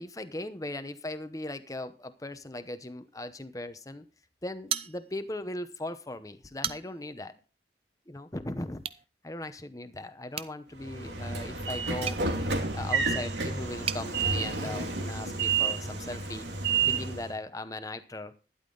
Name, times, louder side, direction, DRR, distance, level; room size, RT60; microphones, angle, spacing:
voice 1, 0.0-4.0 4.4-7.4 8.1-8.8 9.2-12.2 12.7-16.5 16.9-18.3, left 1 dB, 20° left, 10 dB, 0.8 m, -38 dB
sound 1, 4.7-5.4 5.8-5.9 6.4-7.1 8.8-9.0 10.3-14.1, right 8 dB, 30° right, 0.5 m, -38 dB
Train / Sliding door, 10.8-17.3, right 4 dB, 75° right, 2.7 m, -30 dB
12.0 x 11.0 x 3.9 m, 0.34 s
head